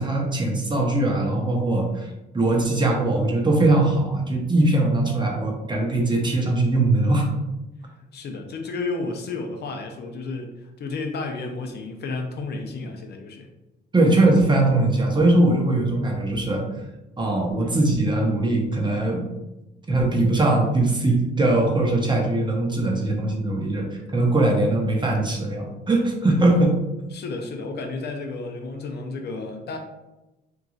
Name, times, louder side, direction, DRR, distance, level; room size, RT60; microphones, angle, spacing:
voice 1, 0.0-2.1 2.3-7.3 13.9-16.7 17.2-19.2 19.9-23.9 24.1-26.8, right 2 dB, 25° right, 0 dB, 0.7 m, -21 dB
voice 2, 8.0-13.5 27.1-29.8, left 3 dB, 55° left, 3 dB, 0.5 m, -32 dB
3.0 x 2.5 x 2.4 m, 0.99 s
cardioid pair, 90°, 20 cm